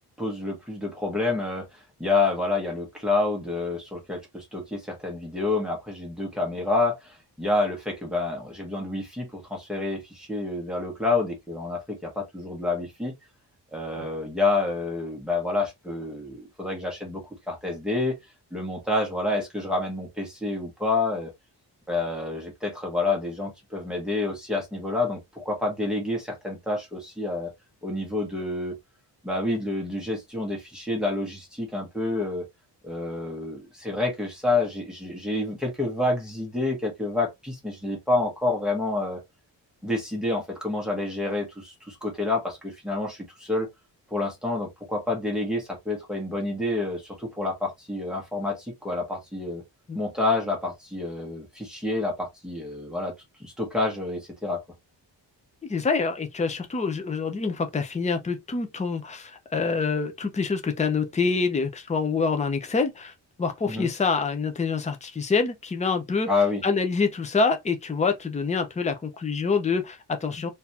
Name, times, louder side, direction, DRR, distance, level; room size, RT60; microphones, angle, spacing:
voice 1, 0.2-13.1 13.7-17.2 17.5-18.1 18.5-21.3 21.9-27.5 27.8-28.7 29.2-32.4 32.8-39.2 39.8-43.7 44.1-49.6 49.9-53.1 53.4-54.6 63.7-63.9 66.3-66.6, left 2 dB, ahead, 1.3 m, -28 dB
voice 2, 55.7-63.1 63.4-66.3 66.6-70.5, left 4 dB, 15° left, 0.5 m, -26 dB
3.9 x 2.7 x 2.8 m
wide cardioid pair, 180°, 43 cm